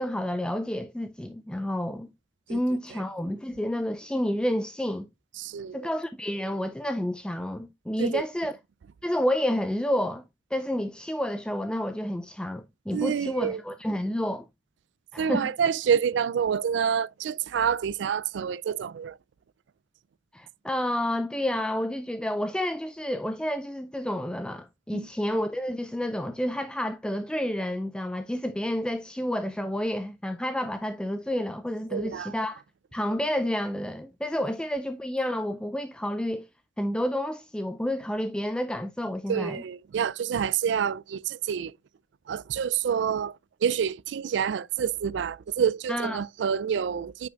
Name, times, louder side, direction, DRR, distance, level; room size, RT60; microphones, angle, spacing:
voice 1, 0.0-2.1 2.5-5.1 5.7-8.5 9.0-10.2 10.5-14.5 15.1-15.5 20.3-32.6 32.9-36.5 36.8-39.6 45.9-46.2, left 1 dB, 5° left, 0.3 m, -30 dB
voice 2, 5.4-5.9 8.0-8.2 12.9-13.6 15.2-19.2 24.9-25.1 31.9-32.3 39.3-41.8 42.3-47.3, right 7 dB, 70° right, 0.3 m, -28 dB
9.5 x 5.8 x 2.3 m
head